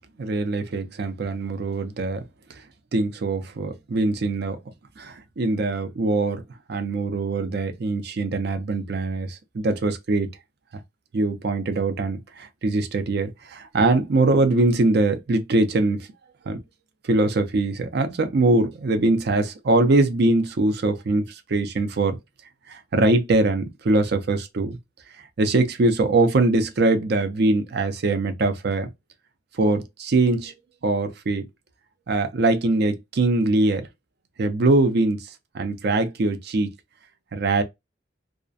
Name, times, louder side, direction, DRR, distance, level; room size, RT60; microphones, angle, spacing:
voice 1, 0.2-2.2 2.9-4.6 5.0-6.4 6.7-10.3 11.1-16.1 16.5-16.6 17.0-22.2 22.7-24.8 25.4-28.9 29.6-30.5 30.8-31.4 32.1-33.9 34.4-35.3 35.5-36.7 37.3-37.6, right 2 dB, 55° right, 0.5 m, -22 dB
2.4 x 2.1 x 2.4 m
head